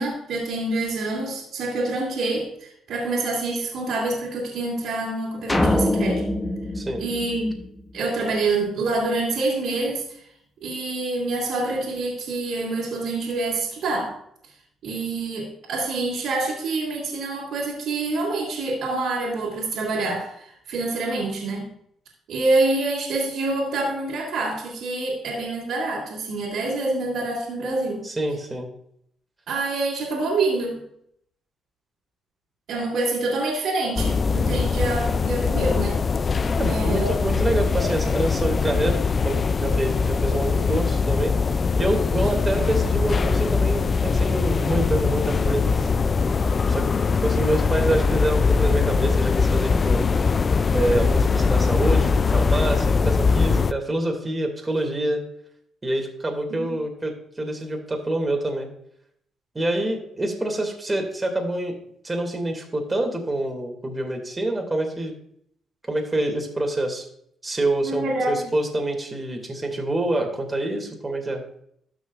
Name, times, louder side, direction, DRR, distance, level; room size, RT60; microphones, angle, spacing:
voice 1, 0.0-6.3 7.0-7.6 7.9-10.2 10.6-14.2 14.8-21.7 22.3-28.1 29.5-30.9 32.7-36.1 36.7-37.1 42.2-42.3 56.5-56.8 67.8-68.5, right 2 dB, 75° right, -5 dB, 2.5 m, -26 dB
sound 1, 5.5-8.0, left 1 dB, 15° left, 0.8 m, -24 dB
voice 2, 28.0-28.7 34.3-34.6 36.6-39.0 39.2-41.3 41.8-45.9 46.6-50.0 50.7-55.2 55.8-58.7 59.5-61.8 62.0-65.1 65.9-67.1 67.4-71.4, right 1 dB, 20° right, 2 dB, 2.4 m, -26 dB
sound 2, 34.0-53.7, left 4 dB, 40° left, 0.3 m, -21 dB
13.5 x 6.2 x 2.5 m, 0.68 s
cardioid pair, 90°, 0 cm